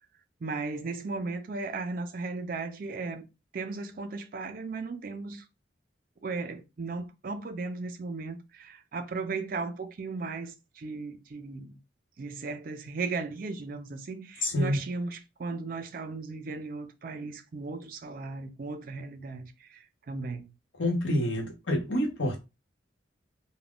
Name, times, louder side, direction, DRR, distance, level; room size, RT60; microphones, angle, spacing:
voice 1, 0.4-3.2 3.5-5.4 6.2-11.8 12.2-20.5, right 3 dB, 50° right, 0.4 m, -36 dB
voice 2, 14.4-14.8 20.8-22.4, left 1 dB, 85° left, 0.9 m, -27 dB
2.4 x 2.1 x 3.5 m
head